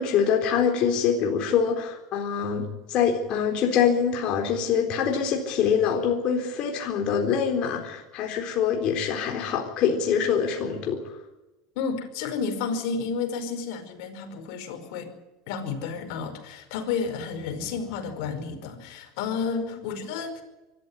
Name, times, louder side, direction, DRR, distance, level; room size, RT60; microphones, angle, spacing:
voice 1, 0.0-11.1 19.5-19.7, left 7 dB, 50° left, 2 dB, 4.0 m, -25 dB
voice 2, 11.8-15.1 15.5-20.4, left 5 dB, 65° left, 6 dB, 5.2 m, -31 dB
24.0 x 13.5 x 9.7 m, 1.0 s
hypercardioid pair, 100°, 2 cm